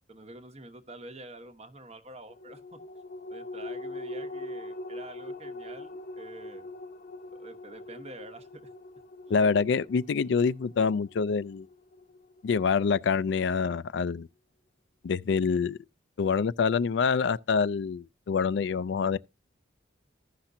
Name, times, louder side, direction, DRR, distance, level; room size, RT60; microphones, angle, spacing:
voice 1, 0.1-2.8 3.3-6.7 7.3-8.6 9.3-9.4, right 2 dB, 35° right, 1.0 m, -47 dB
sound 1, 2.3-13.1 13.5-13.6, left 2 dB, 40° left, 0.7 m, -42 dB
voice 2, 9.3-11.7 12.4-14.3 15.0-15.8 16.2-19.2, left 5 dB, 65° left, 0.4 m, -26 dB
15.5 x 5.8 x 2.7 m
head